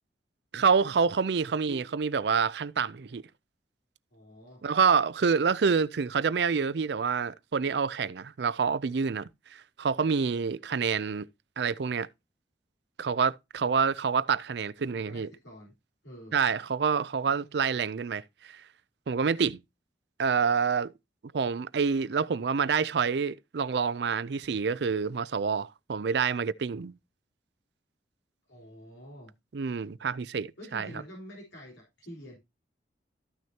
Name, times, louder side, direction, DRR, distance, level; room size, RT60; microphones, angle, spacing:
voice 1, 0.5-3.2 4.6-11.3 11.6-12.1 13.0-15.3 16.3-18.2 19.1-19.6 20.2-20.9 21.3-26.9 29.5-30.9, right 5 dB, 65° right, 0.4 m, -27 dB
voice 2, 4.1-4.6 15.0-15.7 16.0-16.4 28.4-29.3 30.6-32.4, equal, 85° left, 4.1 m, -47 dB
13.5 x 6.2 x 2.8 m
head